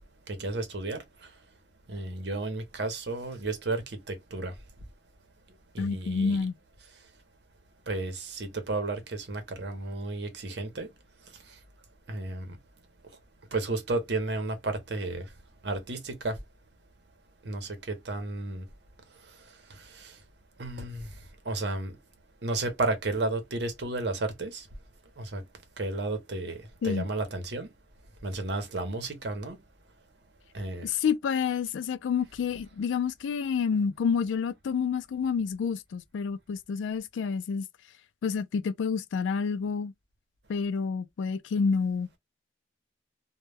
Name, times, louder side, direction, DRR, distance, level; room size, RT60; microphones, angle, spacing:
voice 1, 0.3-1.3 1.9-4.5 5.7-6.4 7.9-10.9 12.1-12.6 13.5-15.3 15.6-16.4 17.4-18.7 19.7-20.2 20.6-21.1 21.5-22.0 22.4-24.7 25.2-25.4 25.8-27.7 28.2-29.6 30.5-30.9, right 2 dB, 60° right, 0.7 m, -33 dB
voice 2, 5.8-6.6 26.8-27.1 30.8-37.7 38.2-39.9 40.5-42.1, left 6 dB, 80° left, 0.3 m, -29 dB
2.1 x 2.1 x 3.2 m
head